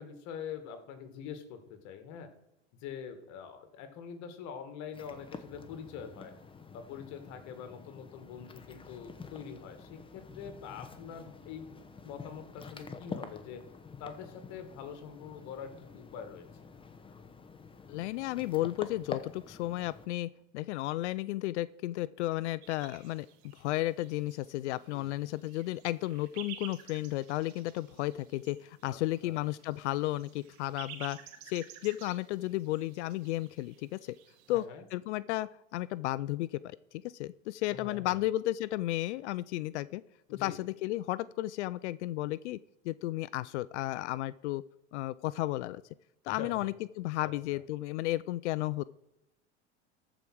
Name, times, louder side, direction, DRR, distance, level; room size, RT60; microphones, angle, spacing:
voice 1, 0.0-2.3 2.8-6.3 6.7-11.7 12.0-13.6 14.0-16.5 24.9-25.1 28.8-29.5 34.5-34.9 37.7-38.2 40.3-40.6 46.3-46.7 47.2-47.6, left 7 dB, 55° left, 9 dB, 1.9 m, -44 dB
sound 1, 4.9-20.1, left 4 dB, 15° left, 1.0 m, -48 dB
voice 2, 17.9-31.2 31.4-34.2 34.5-34.6 34.9-36.6 36.9-40.0 40.3-42.6 42.8-44.6 44.9-45.8 46.2-48.8, left 16 dB, 75° left, 19 dB, 0.5 m, -33 dB
sound 2, 22.6-34.7, right 9 dB, 65° right, 1.8 m, -52 dB
14.0 x 5.0 x 6.0 m, 0.88 s
hypercardioid pair, 105°, 35 cm